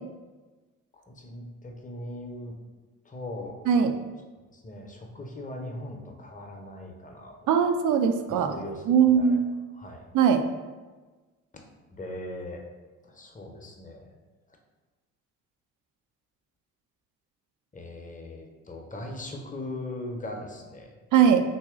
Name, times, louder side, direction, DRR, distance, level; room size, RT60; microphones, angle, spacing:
voice 1, 0.9-2.5 3.0-3.7 4.5-7.5 8.3-9.4 9.8-10.0 11.9-12.6 13.0-14.1 17.7-21.0, left 1 dB, 20° left, 2 dB, 0.7 m, -39 dB
voice 2, 7.5-8.6 8.9-9.5 10.1-10.4 21.1-21.4, right 7 dB, 60° right, 7 dB, 0.5 m, -20 dB
2.9 x 2.7 x 3.6 m, 1.3 s
hypercardioid pair, 45°, 36 cm